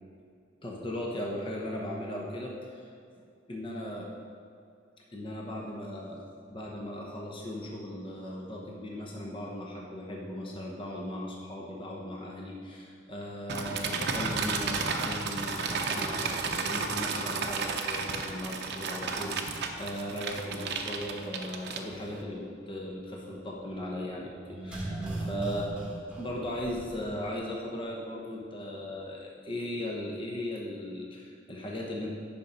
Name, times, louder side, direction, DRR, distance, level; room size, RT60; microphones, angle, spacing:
voice 1, 0.6-2.9 3.5-4.1 5.1-6.2 6.5-25.7 26.2-32.1, left 1 dB, 25° left, -2 dB, 0.9 m, -37 dB
sound 1, 13.5-22.2, right 4 dB, 55° right, 0.7 m, -33 dB
sound 2, 24.4-27.3 27.5-27.6, right 1 dB, 5° right, 1.5 m, -37 dB
9.7 x 5.1 x 5.6 m, 2.4 s
head